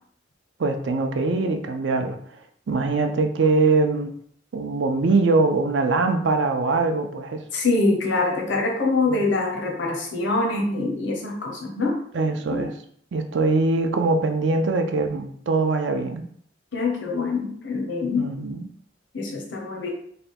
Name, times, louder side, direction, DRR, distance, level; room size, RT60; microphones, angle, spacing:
voice 1, 0.6-2.2 2.7-4.1 4.5-7.4 9.1-9.2 12.1-12.7 13.1-16.3 18.2-18.7, right 3 dB, 75° right, 6 dB, 0.5 m, -22 dB
voice 2, 7.5-12.0 12.5-12.7 16.7-18.3 19.1-19.9, left 3 dB, 75° left, 0 dB, 0.8 m, -24 dB
3.3 x 2.2 x 4.2 m, 0.62 s
head